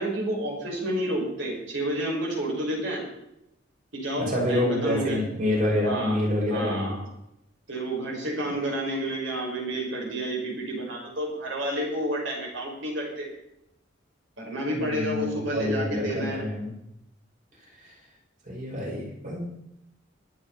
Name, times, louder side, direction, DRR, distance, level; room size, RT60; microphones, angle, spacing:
voice 1, 0.0-3.0 3.9-5.2 5.8-6.2 6.5-7.0 7.7-13.3 14.4-16.4, right 1 dB, 75° right, -2 dB, 5.9 m, -30 dB
voice 2, 4.2-6.9 14.7-16.7 17.8-17.9 18.5-19.4, left 1 dB, 45° right, -2 dB, 5.3 m, -27 dB
23.0 x 8.7 x 4.3 m, 0.82 s
head